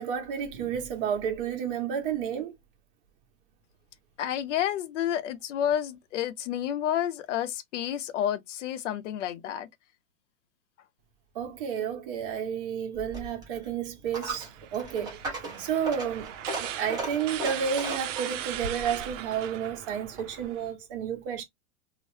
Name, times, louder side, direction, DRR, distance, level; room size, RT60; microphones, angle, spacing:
voice 1, 0.0-2.6 11.3-15.2 15.6-16.3 16.6-21.4, right 8 dB, 45° right, 1.1 m, -31 dB
voice 2, 4.2-9.7, left 10 dB, 70° left, 0.6 m, -30 dB
Coin (dropping), 12.9-20.5, right 2 dB, 10° right, 0.9 m, -38 dB
sound 1, 14.2-20.7, right 12 dB, 75° right, 0.6 m, -39 dB
2.8 x 2.0 x 3.1 m
supercardioid pair, 165°, 37 cm